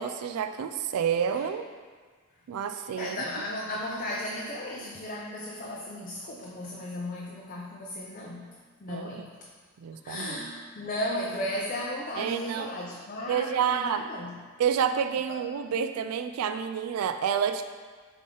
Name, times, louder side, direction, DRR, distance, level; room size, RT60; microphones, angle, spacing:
voice 1, 0.0-1.7 2.5-3.2 8.9-9.2 9.8-10.4 12.2-12.7 13.3-14.0 14.6-17.6, right 8 dB, 80° right, 8 dB, 0.3 m, -29 dB
voice 2, 2.6-8.5 8.8-9.3 10.0-14.4 15.3-15.4, left 1 dB, 40° left, -3 dB, 0.6 m, -35 dB
7.5 x 3.5 x 3.8 m, 1.5 s
head